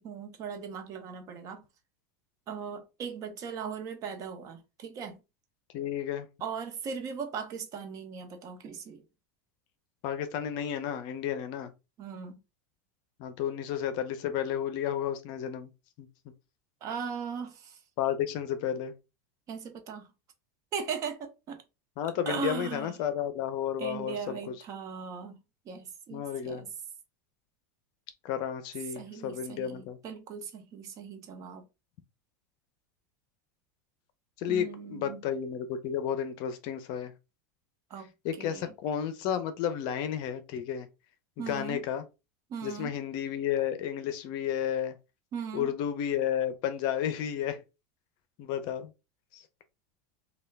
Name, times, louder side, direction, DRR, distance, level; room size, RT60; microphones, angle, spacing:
voice 1, 0.0-1.6 2.5-5.2 6.4-9.0 12.0-12.4 16.8-17.8 19.5-20.1 20.7-21.6 22.3-23.0 23.8-26.7 28.9-31.6 34.5-35.3 37.9-38.1 38.4-38.7 41.4-41.9 42.5-43.0 45.3-45.7, right 6 dB, 35° right, 0.8 m, -38 dB
voice 2, 5.7-6.3 10.0-11.7 13.2-15.7 16.0-16.1 18.0-18.9 22.0-24.5 26.1-26.7 28.2-30.0 34.4-37.1 38.2-40.9 41.4-42.0 42.6-45.0 45.5-47.6 48.4-48.9 49.3-49.4, left 9 dB, 50° left, 0.6 m, -32 dB
3.3 x 2.3 x 3.2 m
supercardioid pair, 135°, 9 cm